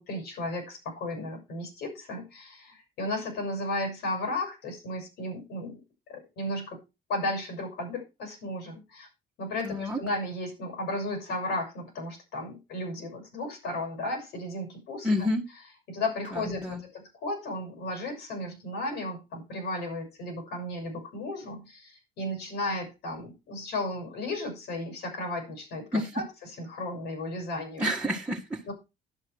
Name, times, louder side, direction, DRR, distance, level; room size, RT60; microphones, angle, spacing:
voice 1, 0.0-5.8 6.1-6.8 7.1-9.1 9.4-15.1 15.9-27.9 28.7-28.8, left 1 dB, 75° left, 4 dB, 6.7 m, -34 dB
voice 2, 9.6-10.0 15.0-15.4 16.3-16.8 25.9-26.1 27.8-28.6, left 1 dB, 10° right, -4 dB, 1.9 m, -29 dB
10.5 x 8.4 x 4.7 m, 0.27 s
cardioid pair, 110°, 17 cm